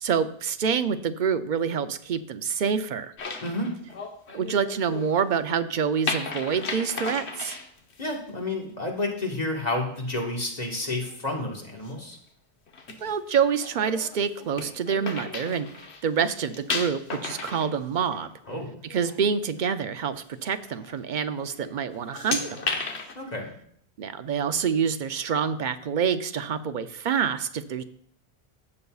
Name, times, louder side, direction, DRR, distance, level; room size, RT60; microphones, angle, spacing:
voice 1, 0.0-3.1 4.3-7.6 13.0-18.3 18.9-22.6 24.0-27.8, right 7 dB, 55° right, 10 dB, 0.6 m, -27 dB
sound 1, 3.2-5.3 6.1-8.2 11.1-11.4 11.8-12.0 12.7-16.0 16.3-18.5 18.8-19.2 19.6-19.7 20.6-21.0 21.4-21.7 21.9-23.1, left 4 dB, 80° left, 1.3 m, -35 dB
voice 2, 3.4-3.7 8.0-12.2 18.5-18.7 23.1-23.5, left 2 dB, 40° left, 0 dB, 1.6 m, -30 dB
15.5 x 6.7 x 2.4 m, 0.65 s
omnidirectional pair, 1.1 m